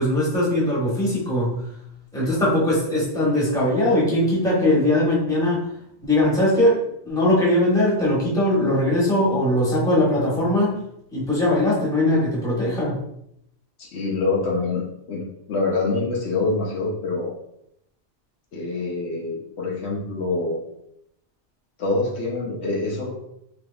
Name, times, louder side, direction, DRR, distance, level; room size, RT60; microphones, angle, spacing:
voice 1, 0.0-1.6 2.1-5.6 6.0-6.8 7.0-10.8 11.1-13.0, left 1 dB, 5° left, -7 dB, 1.0 m, -20 dB
voice 2, 13.8-15.2 15.5-17.3 18.5-20.6 21.8-23.1, left 3 dB, 70° left, -2 dB, 0.9 m, -25 dB
3.4 x 3.0 x 2.3 m, 0.76 s
omnidirectional pair, 1.2 m